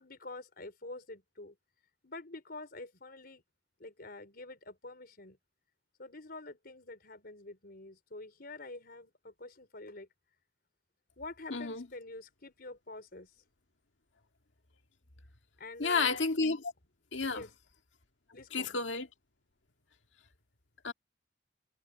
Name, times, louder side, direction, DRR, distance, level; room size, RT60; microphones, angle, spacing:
voice 1, 0.0-1.6 2.0-3.4 3.8-5.4 6.0-10.1 11.2-13.3 15.6-16.2 17.3-17.5 18.3-18.8, left 2 dB, 55° left, 4.5 m, -47 dB
voice 2, 11.5-11.9 15.8-16.7 17.1-17.5 18.5-19.1 20.8-20.9, left 4 dB, 80° left, 2.0 m, -31 dB
head